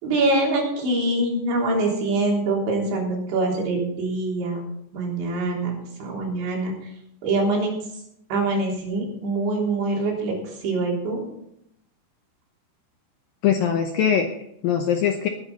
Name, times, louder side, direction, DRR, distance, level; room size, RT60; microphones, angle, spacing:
voice 1, 0.0-4.6 4.9-5.7 6.0-6.7 7.2-7.7 8.3-10.4 10.6-11.3, right 2 dB, 80° right, -2 dB, 5.8 m, -24 dB
voice 2, 13.4-15.3, left 8 dB, 75° left, 4 dB, 2.1 m, -22 dB
20.0 x 9.6 x 4.2 m, 0.75 s
omnidirectional pair, 5.2 m